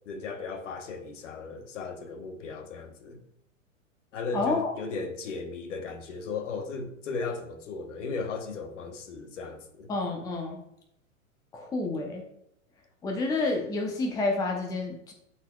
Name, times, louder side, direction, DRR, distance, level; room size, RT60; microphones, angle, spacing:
voice 1, 0.1-3.2 4.1-9.9, left 4 dB, 60° left, 1.1 m, -36 dB
voice 2, 4.3-4.7 9.9-10.6 11.5-12.2 13.0-15.1, left 3 dB, 10° left, 0.6 m, -29 dB
11.5 x 4.2 x 2.3 m
figure-of-eight pair, 100°, 42 cm